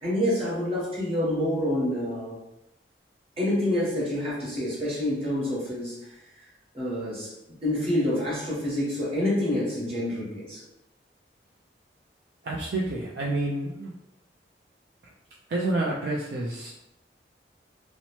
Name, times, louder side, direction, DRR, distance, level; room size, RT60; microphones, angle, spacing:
voice 1, 0.0-2.4 3.4-5.9 6.7-10.6, left 1 dB, 30° right, -7 dB, 1.1 m, -27 dB
voice 2, 12.4-13.9 15.5-16.7, right 2 dB, 60° right, -4 dB, 0.3 m, -29 dB
2.8 x 2.0 x 3.0 m, 0.87 s
head